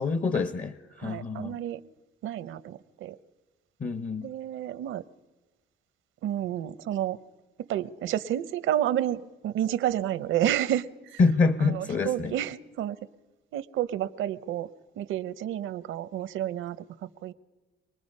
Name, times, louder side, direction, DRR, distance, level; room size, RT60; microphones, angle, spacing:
voice 1, 0.0-1.5 3.8-4.3 11.2-12.3, left 4 dB, 40° left, 11 dB, 0.9 m, -26 dB
voice 2, 1.0-1.8 2.2-3.2 4.2-5.0 6.2-7.2 7.6-11.2 11.6-13.0 13.5-17.3, right 11 dB, 85° right, 16 dB, 0.7 m, -30 dB
25.0 x 19.5 x 5.4 m, 1.2 s
cardioid pair, 90°, 20 cm